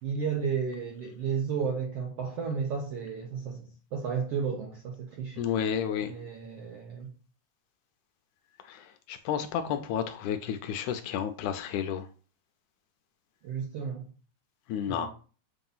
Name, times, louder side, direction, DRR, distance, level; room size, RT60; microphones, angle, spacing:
voice 1, 0.0-5.5 6.1-7.1 13.4-14.0 14.9-15.1, right 6 dB, 75° right, 1.4 m, -33 dB
voice 2, 5.4-6.1 8.7-12.1 14.7-15.1, left 8 dB, 80° left, 1.9 m, -31 dB
7.7 x 2.9 x 5.4 m
omnidirectional pair, 3.8 m